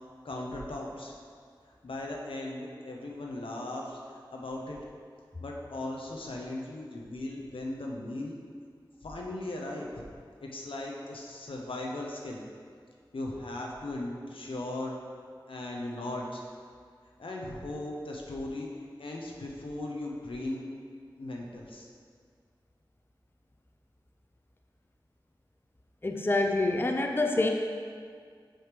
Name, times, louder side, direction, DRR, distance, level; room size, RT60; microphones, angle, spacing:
voice 1, 0.2-1.1 1.8-4.8 5.4-8.4 9.0-9.9 10.4-12.4 13.1-14.9 15.5-16.4 17.2-20.6 21.2-21.9, left 2 dB, 85° left, -1 dB, 0.9 m, -38 dB
voice 2, 26.0-27.5, left 2 dB, 25° left, 3 dB, 0.5 m, -26 dB
7.7 x 3.2 x 5.1 m, 2.1 s
wide cardioid pair, 50°, 9 cm